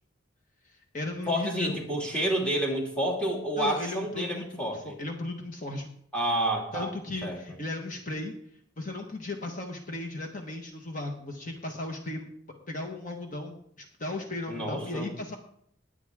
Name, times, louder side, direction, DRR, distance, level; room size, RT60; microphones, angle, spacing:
voice 1, 0.6-1.8 3.6-5.9 6.7-8.3 8.8-12.3 12.7-15.4, left 2 dB, 40° left, 3 dB, 1.3 m, -36 dB
voice 2, 1.3-4.9 6.1-6.9 7.2-7.4 14.5-15.1, right 1 dB, 5° left, -2 dB, 2.5 m, -29 dB
20.0 x 9.1 x 3.6 m, 0.69 s
head